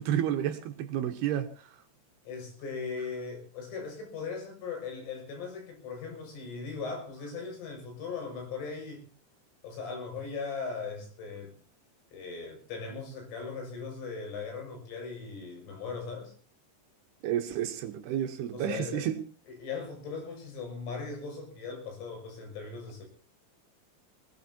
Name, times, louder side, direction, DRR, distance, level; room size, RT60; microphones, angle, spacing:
voice 1, 0.0-1.8 17.2-19.2, right 10 dB, 70° right, 2.7 m, -31 dB
voice 2, 2.3-9.1 9.6-11.5 12.1-16.4 18.5-19.1 19.5-23.0, left 5 dB, 90° left, 8.7 m, -39 dB
21.5 x 20.5 x 2.8 m
omnidirectional pair, 5.5 m